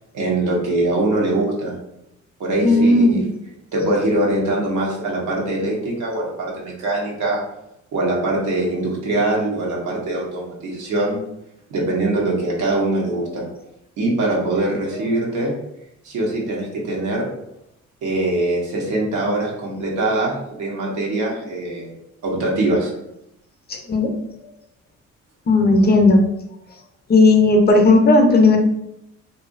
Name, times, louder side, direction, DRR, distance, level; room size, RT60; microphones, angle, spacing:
voice 1, 0.1-1.7 2.4-3.3 3.7-7.4 7.9-11.2 11.7-13.4 14.0-15.5 16.0-17.3 18.0-21.9 22.2-22.9, right 2 dB, 80° right, -2 dB, 1.0 m, -22 dB
voice 2, 2.6-3.2 23.7-24.1 25.5-26.3 27.1-28.6, left 2 dB, 35° left, 3 dB, 0.5 m, -14 dB
2.6 x 2.6 x 2.4 m, 0.82 s
cardioid pair, 90°, 30 cm